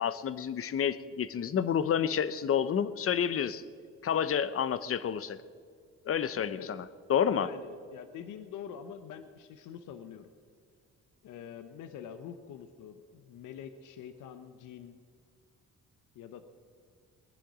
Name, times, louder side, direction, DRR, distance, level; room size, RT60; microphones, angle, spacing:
voice 1, 0.0-3.6 4.0-5.4 6.0-7.5, left 8 dB, 50° left, 15 dB, 0.8 m, -29 dB
voice 2, 6.3-6.7 7.2-10.3 11.2-15.0 16.1-16.5, left 8 dB, 85° left, 9 dB, 0.9 m, -46 dB
20.0 x 10.0 x 6.1 m, 2.1 s
cardioid pair, 90°, 30 cm